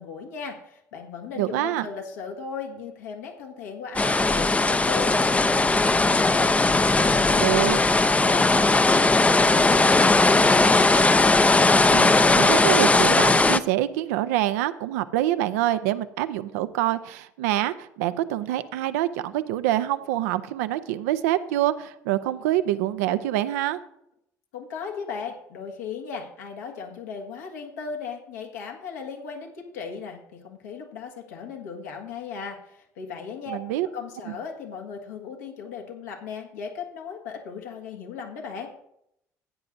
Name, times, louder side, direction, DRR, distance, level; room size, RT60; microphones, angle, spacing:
voice 1, 0.0-6.6 7.0-7.5 8.0-9.1 9.3-10.9 24.5-33.6 33.8-38.7, left 6 dB, 80° left, 1 dB, 1.7 m, -37 dB
voice 2, 1.4-1.9 7.4-7.8 11.9-23.8 33.5-33.9 34.3-34.4, right 14 dB, 75° right, 12 dB, 0.6 m, -26 dB
sound 1, 4.0-13.6, left 2 dB, 15° left, 0.6 m, -19 dB
15.5 x 9.5 x 2.6 m, 0.77 s
hypercardioid pair, 55°, 9 cm